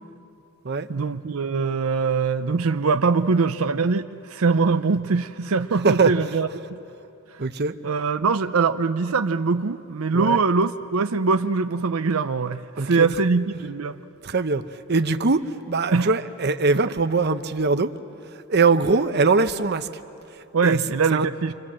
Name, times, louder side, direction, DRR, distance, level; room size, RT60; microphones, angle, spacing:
voice 1, 0.9-6.8 7.8-14.0 15.9-16.1 20.5-21.5, right 4 dB, 85° right, 0.6 m, -22 dB
voice 2, 5.8-6.3 7.4-7.8 10.1-10.4 12.8-13.1 14.2-17.9 18.5-19.9 20.6-20.8 21.1-21.3, right 4 dB, 50° right, 0.8 m, -22 dB
27.5 x 25.5 x 7.5 m
head